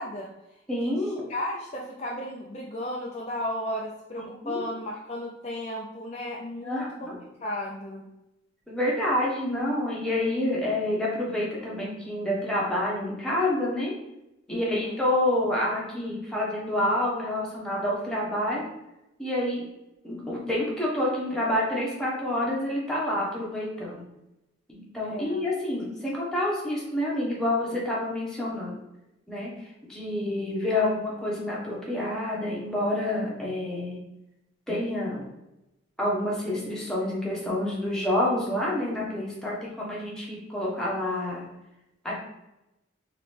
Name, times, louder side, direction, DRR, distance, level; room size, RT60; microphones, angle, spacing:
voice 1, 0.0-7.1 7.4-8.1 14.5-14.9 25.0-25.4, left 1 dB, 35° left, -2 dB, 0.4 m, -35 dB
voice 2, 0.7-1.2 4.2-4.6 6.6-7.2 8.7-13.9 14.5-18.6 19.2-19.6 20.0-24.0 24.7-28.8 29.3-29.5 29.9-34.0 34.7-35.3 36.0-41.5 42.0-42.2, left 1 dB, 5° left, -6 dB, 1.1 m, -28 dB
3.9 x 3.6 x 3.3 m, 0.91 s
head